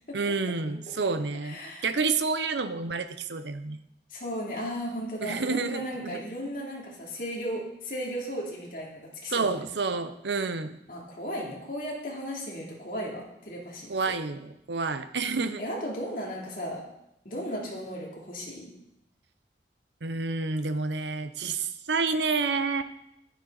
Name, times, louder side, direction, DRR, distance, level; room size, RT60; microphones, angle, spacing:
voice 1, 0.1-3.8 5.2-6.2 9.3-10.8 13.9-15.6 20.0-22.8, right 4 dB, 80° right, 11 dB, 0.7 m, -29 dB
voice 2, 1.4-1.9 4.1-9.6 10.9-14.1 15.6-16.8 17.2-18.7, equal, 50° left, -3 dB, 2.7 m, -35 dB
10.5 x 9.9 x 4.0 m, 0.81 s
head